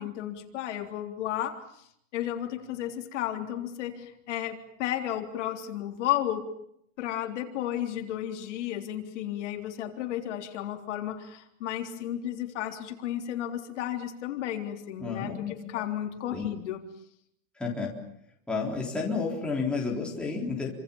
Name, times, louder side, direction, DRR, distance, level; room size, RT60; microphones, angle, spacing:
voice 1, 0.0-1.8 2.1-6.5 7.0-16.8, left 12 dB, 60° left, 4 dB, 3.8 m, -33 dB
voice 2, 15.0-15.8 16.3-16.5 17.6-17.9 18.5-20.7, left 4 dB, ahead, -3 dB, 4.0 m, -31 dB
28.5 x 26.0 x 7.3 m, 0.73 s
supercardioid pair, 180°, 41 cm